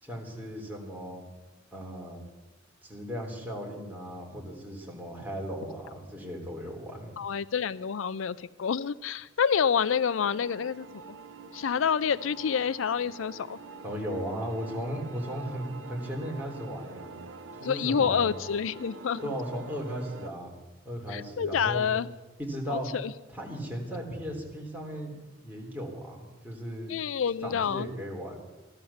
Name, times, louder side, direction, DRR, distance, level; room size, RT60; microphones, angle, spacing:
voice 1, 0.0-1.2 1.7-2.2 2.8-7.1 13.8-17.2 17.6-18.3 19.2-20.5 20.9-21.8 22.4-22.9 23.3-25.1 25.4-26.9 27.4-28.4, equal, 10° right, -1 dB, 3.6 m, -36 dB
voice 2, 7.2-10.9 11.5-13.6 17.6-19.3 21.1-22.1 22.7-23.1 26.9-27.9, left 7 dB, 85° left, 17 dB, 0.5 m, -28 dB
sound 1, 10.2-20.3, right 4 dB, 75° right, 0.8 m, -46 dB
16.0 x 12.0 x 7.1 m, 1.2 s
head